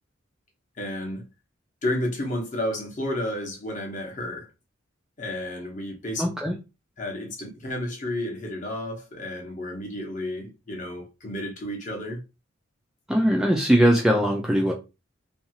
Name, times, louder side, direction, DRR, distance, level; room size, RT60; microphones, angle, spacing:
voice 1, 0.8-1.2 1.8-4.5 5.2-6.2 7.0-12.2, left 1 dB, 40° left, 0.9 m, -31 dB
voice 2, 6.2-6.5 13.1-14.7, equal, 5° right, 0.4 m, -20 dB
2.7 x 2.3 x 2.8 m
head